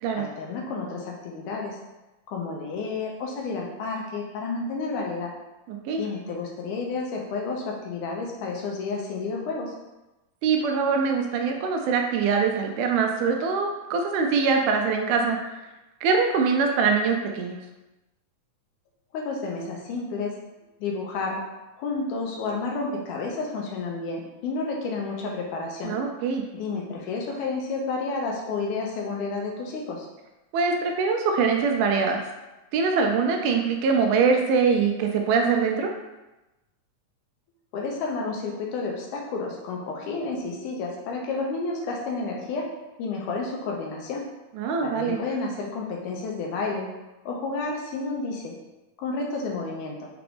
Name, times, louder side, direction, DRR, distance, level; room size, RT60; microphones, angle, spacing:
voice 1, 0.1-1.8 2.3-5.3 6.0-9.7 19.1-20.3 20.8-21.4 21.8-26.0 26.5-30.1 37.7-42.7 43.0-44.2 44.8-46.9 47.3-48.5 49.0-50.1, left 3 dB, 80° left, -1 dB, 2.0 m, -31 dB
voice 2, 5.7-6.0 10.4-15.4 16.0-17.6 25.8-26.4 30.5-32.2 32.7-35.9 44.6-45.2, right 5 dB, 80° right, 3 dB, 2.0 m, -23 dB
5.9 x 2.5 x 3.4 m, 1.0 s
omnidirectional pair, 3.7 m